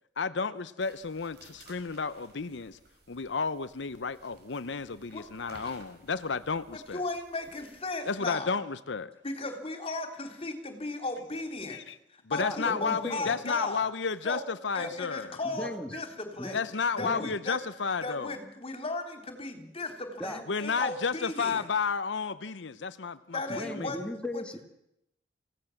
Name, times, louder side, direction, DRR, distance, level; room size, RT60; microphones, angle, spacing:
voice 1, 0.2-2.8 3.1-7.0 8.1-9.1 11.7-12.0 12.3-15.4 16.5-18.3 20.5-23.9, left 5 dB, 80° left, 0.8 m, -32 dB
sound 1, 0.8-7.9, right 2 dB, 60° right, 5.5 m, -57 dB
voice 2, 6.7-8.5 9.2-11.8 12.1-13.9 14.2-14.4 14.7-16.6 16.9-17.6 18.0-21.7 23.3-24.0 24.3-24.4, left 2 dB, 35° left, 3.5 m, -36 dB
voice 3, 12.4-13.3 14.8-14.9 15.4-16.0 16.4-16.6 17.0-17.3 20.2-20.4 23.5-24.7, left 1 dB, 5° left, 2.1 m, -37 dB
27.0 x 17.0 x 7.3 m
head